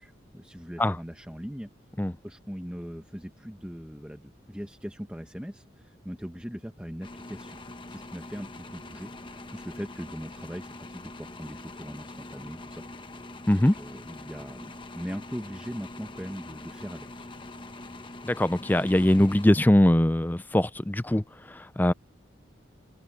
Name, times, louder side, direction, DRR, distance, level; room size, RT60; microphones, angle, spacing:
voice 1, 0.0-1.7 2.2-7.6 7.9-12.8 13.2-13.3 13.8-17.3, equal, 5° right, 1.1 m, -40 dB
sound 1, 7.0-20.0, left 2 dB, 25° left, 1.0 m, -44 dB
voice 2, 18.2-21.9, left 1 dB, 10° left, 0.4 m, -22 dB
open air
head